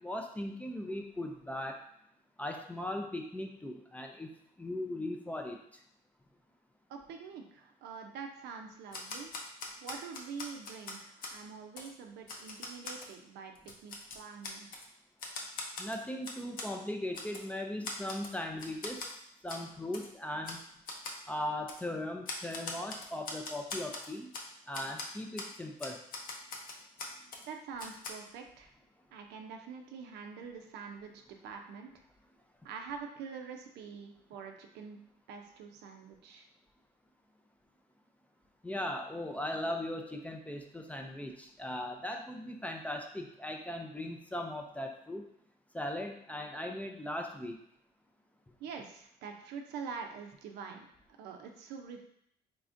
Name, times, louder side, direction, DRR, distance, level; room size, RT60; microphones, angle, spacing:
voice 1, 0.0-1.8 2.4-5.6 15.8-19.1 19.4-20.6 21.3-24.3 24.7-26.0 38.6-45.3 45.7-47.6, left 1 dB, 10° left, 3 dB, 0.4 m, -38 dB
voice 2, 6.9-9.3 9.8-14.7 27.1-28.7 29.1-31.9 32.6-35.0 35.3-36.5 48.6-50.9 51.2-52.0, right 6 dB, 80° right, 3 dB, 0.6 m, -45 dB
Typewriter, 8.9-11.4 11.8-11.9 12.3-13.1 13.6-14.9 15.2-16.7 17.1-17.5 17.8-18.3 18.6-19.1 19.5-19.6 19.9-20.1 20.4-20.6 20.9-21.2 21.7-21.8 22.3-24.5 24.7-25.1 25.4-25.5 25.8-27.5 27.8-28.1, left 3 dB, 55° left, 0.6 m, -42 dB
3.6 x 3.3 x 2.5 m, 0.70 s
cardioid pair, 110°, 17 cm